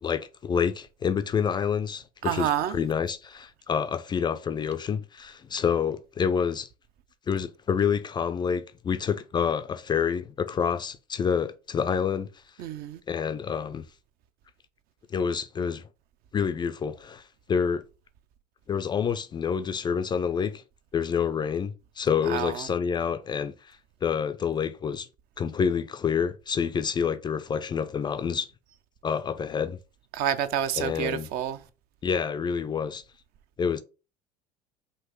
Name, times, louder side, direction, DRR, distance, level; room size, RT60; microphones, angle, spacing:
voice 1, 0.0-6.7 7.3-12.3 13.1-13.8 15.1-15.8 16.3-17.2 17.5-17.8 18.7-20.6 20.9-25.1 25.4-28.5 29.0-29.8 30.7-31.3 32.0-33.0 33.6-33.8, left 7 dB, 20° left, 0.3 m, -28 dB
voice 2, 2.3-2.7 12.6-13.0 22.3-22.5 30.1-31.6, right 10 dB, 50° right, 0.5 m, -28 dB
5.9 x 2.5 x 3.0 m
hypercardioid pair, 75°, 20 cm